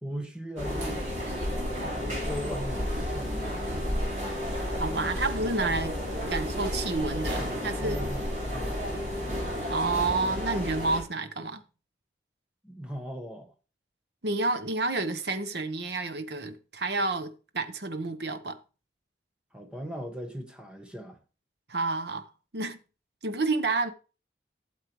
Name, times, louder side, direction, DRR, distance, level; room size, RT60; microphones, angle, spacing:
voice 1, 0.0-1.1 1.9-3.6 7.4-8.9 12.6-13.5 19.5-21.2, equal, 5° right, 1.2 m, -39 dB
sound 1, 0.6-11.0, equal, 40° right, 4.1 m, -32 dB
voice 2, 4.7-6.0 6.3-8.1 9.7-11.6 14.2-18.6 21.7-22.3 22.5-22.8 23.2-23.9, right 3 dB, 70° right, 1.0 m, -29 dB
13.0 x 7.4 x 3.1 m
head